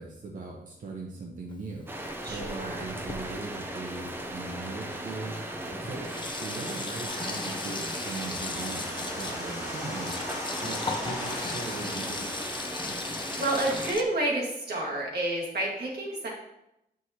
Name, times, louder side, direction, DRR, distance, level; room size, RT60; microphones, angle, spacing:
voice 1, 0.0-1.9 2.3-5.4 5.8-6.1 6.4-10.2 10.6-12.4, right 3 dB, 55° right, -1 dB, 0.8 m, -39 dB
Sink (filling or washing), 1.5-4.6 5.4-5.5 5.7-14.0, left 3 dB, 30° left, 0.6 m, -37 dB
sound 1, 1.9-13.9, right 1 dB, 15° right, 0.6 m, -37 dB
voice 2, 2.2-2.8 5.6-6.2 13.0-16.3, right 1 dB, 85° right, -3 dB, 1.6 m, -30 dB
sound 2, 7.0-12.9, left 2 dB, 45° left, 1.5 m, -41 dB
7.6 x 4.7 x 2.8 m, 0.85 s
wide cardioid pair, 135°, 16 cm